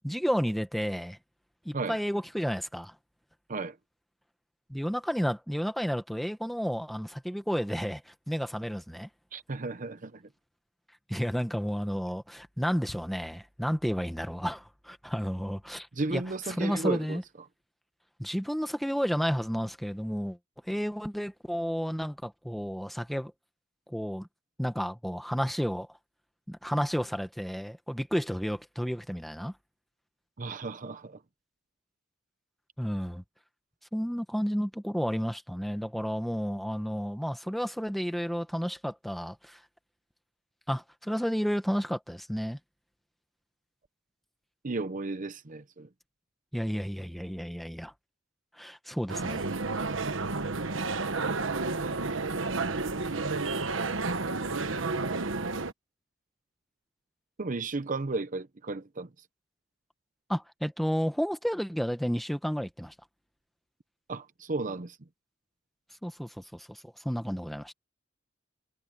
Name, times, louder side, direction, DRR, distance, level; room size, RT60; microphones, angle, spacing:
voice 1, 0.0-1.2 1.6-2.9 4.7-9.1 11.1-17.2 18.2-20.4 20.6-23.3 23.9-24.3 24.6-26.0 26.5-29.5 32.8-33.2 33.9-39.6 40.7-42.6 46.5-47.9 48.5-49.5 60.3-62.9 66.0-67.7, equal, ahead, 1.4 m, -32 dB
voice 2, 9.3-10.2 16.0-17.2 30.4-31.2 44.6-45.9 57.4-59.1 64.1-65.0, right 3 dB, 40° right, 0.8 m, -34 dB
sound 1, 49.1-55.7, right 3 dB, 75° right, 1.3 m, -31 dB
head